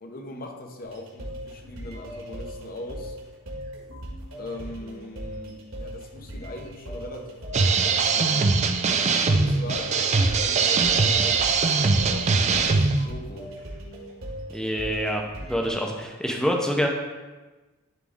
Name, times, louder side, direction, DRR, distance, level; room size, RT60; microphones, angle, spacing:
voice 1, 0.0-3.2 4.4-8.5 9.0-13.5, left 1 dB, 40° left, 3 dB, 0.8 m, -40 dB
sound 1, 0.8-15.7, equal, 60° right, 1.7 m, -39 dB
sound 2, 7.5-13.1, right 4 dB, 30° right, 0.4 m, -21 dB
voice 2, 14.5-16.9, equal, 5° left, 1 dB, 0.6 m, -26 dB
10.5 x 3.7 x 3.6 m, 1.2 s
head